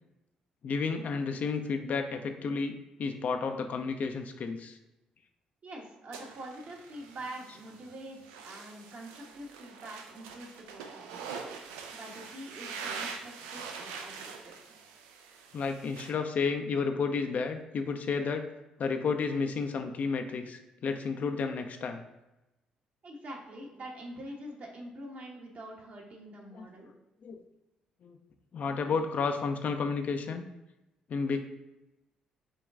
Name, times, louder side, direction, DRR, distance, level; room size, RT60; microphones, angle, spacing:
voice 1, 0.6-4.8 15.5-18.5 18.8-22.0 26.5-26.7 27.2-27.4 28.0-28.2 28.5-30.5 31.1-31.4, left 5 dB, 50° left, 6 dB, 0.4 m, -31 dB
voice 2, 5.6-11.3 11.6-14.6 23.0-26.9, right 1 dB, 50° right, -1 dB, 1.1 m, -45 dB
sound 1, 6.1-16.1, right 5 dB, 80° right, 0.5 m, -44 dB
5.2 x 2.3 x 3.6 m, 0.96 s
hypercardioid pair, 50°, 3 cm